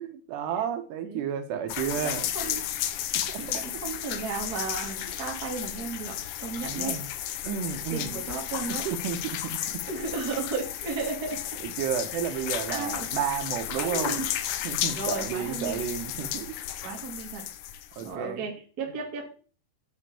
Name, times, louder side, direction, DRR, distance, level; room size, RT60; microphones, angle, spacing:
voice 1, 0.0-2.3 3.3-3.6 6.6-7.1 7.4-8.2 8.9-9.8 11.6-14.2 14.7-16.6 18.0-18.5, right 8 dB, 80° right, 8 dB, 3.4 m, -32 dB
sound 1, 1.7-18.1, left 11 dB, 90° left, 1.7 m, -33 dB
voice 2, 1.9-2.7 3.3-7.0 7.9-8.9 9.9-11.4 12.7-13.2 13.8-14.3 15.0-15.8 16.8-17.4 18.0-19.3, right 4 dB, 30° right, 1 dB, 2.3 m, -34 dB
9.1 x 6.6 x 7.0 m, 0.38 s
omnidirectional pair, 4.8 m